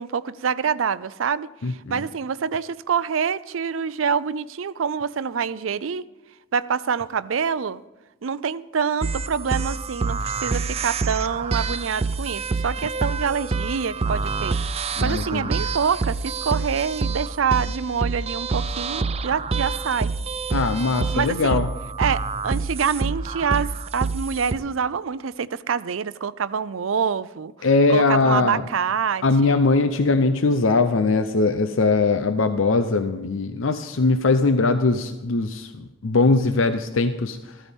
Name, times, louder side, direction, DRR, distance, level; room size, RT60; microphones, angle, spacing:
voice 1, 0.0-6.0 6.5-7.8 8.2-20.1 21.1-21.6 22.0-29.6, right 6 dB, 90° right, 16 dB, 0.5 m, -26 dB
voice 2, 1.6-2.0 15.0-15.6 20.5-21.7 27.6-28.6 29.2-37.4, left 3 dB, 80° left, 9 dB, 0.7 m, -21 dB
sound 1, 9.0-24.6, right 4 dB, 30° right, 0.4 m, -27 dB
14.0 x 13.5 x 3.6 m, 1.1 s
head